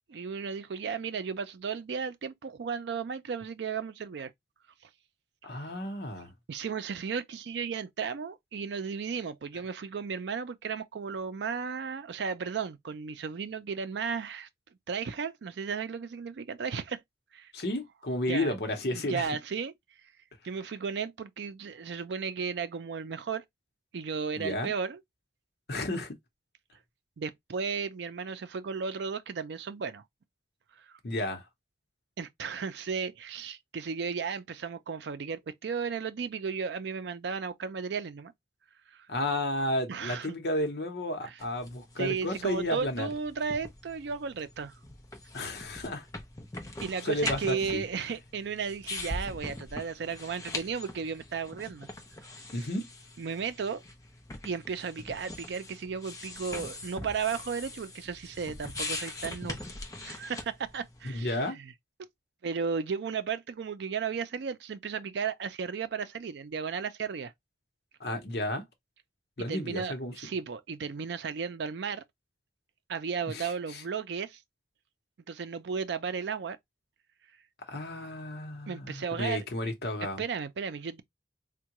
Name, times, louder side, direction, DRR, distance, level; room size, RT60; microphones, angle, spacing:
voice 1, 0.1-4.3 6.5-14.5 14.9-17.0 17.3-17.5 18.3-18.5 18.9-19.7 20.4-23.4 23.9-25.0 27.2-30.0 32.2-38.3 39.9-40.4 41.2-41.4 42.0-44.7 46.8-51.9 52.6-52.7 53.2-53.8 54.4-59.6 60.0-61.7 62.4-67.3 69.4-72.0 72.9-74.4 75.3-76.6 78.7-79.7 80.2-81.0, right 6 dB, 75° right, 0.4 m, -34 dB
voice 2, 5.4-6.3 17.5-19.3 24.4-24.7 25.7-26.2 31.0-31.4 39.1-43.1 45.3-46.1 47.0-47.8 52.5-52.9 61.0-61.6 68.0-68.6 69.4-70.1 73.3-73.8 77.7-80.2, left 1 dB, 65° left, 0.8 m, -32 dB
sound 1, 41.4-61.2, left 2 dB, 20° left, 0.6 m, -42 dB
3.6 x 2.2 x 2.9 m
head